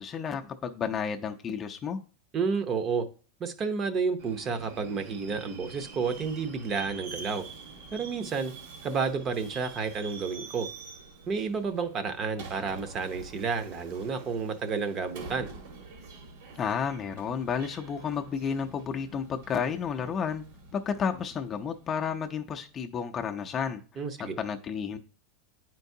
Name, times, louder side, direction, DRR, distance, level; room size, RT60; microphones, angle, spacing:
voice 1, 0.0-2.0 16.6-20.4 20.7-23.8 24.2-25.0, left 7 dB, 25° left, 0.5 m, -31 dB
voice 2, 2.3-3.1 3.4-7.4 7.9-8.5 8.8-10.7 11.3-15.5 24.0-24.4, right 5 dB, 30° right, 0.7 m, -31 dB
Subway metro underground, 4.2-22.6, right 4 dB, 70° right, 1.5 m, -46 dB
8.9 x 4.5 x 2.7 m
supercardioid pair, 135°, 0 cm